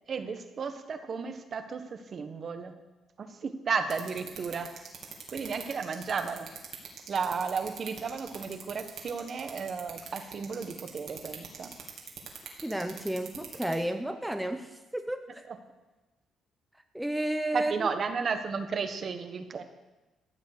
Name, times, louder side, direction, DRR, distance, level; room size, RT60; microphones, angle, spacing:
voice 1, 0.1-2.8 3.2-4.7 5.3-6.5 7.1-11.7 15.5-15.6 17.5-19.6, right 5 dB, 50° right, 8 dB, 1.2 m, -33 dB
sound 1, 3.9-13.7, right 7 dB, 70° right, 2.6 m, -41 dB
voice 2, 12.6-15.5 16.9-17.7, right 1 dB, 5° right, 7 dB, 0.8 m, -32 dB
14.0 x 7.4 x 6.7 m, 1.1 s
cardioid pair, 90°, 0 cm